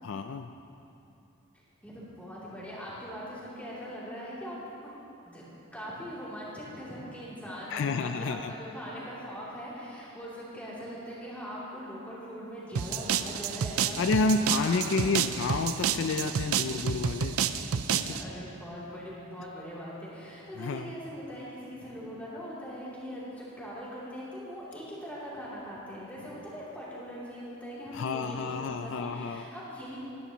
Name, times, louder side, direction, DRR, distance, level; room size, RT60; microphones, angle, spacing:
voice 1, 0.0-0.5 7.7-8.5 14.0-17.4 17.9-18.0 20.6-21.0 27.9-29.5, left 4 dB, 60° left, 8 dB, 0.3 m, -30 dB
voice 2, 1.8-4.9 5.2-5.4 5.7-15.2 18.0-30.0, equal, 5° left, -9 dB, 3.0 m, -41 dB
sound 1, 12.8-18.2, right 8 dB, 80° right, 0.5 m, -30 dB
18.5 x 11.0 x 3.0 m, 2.8 s
head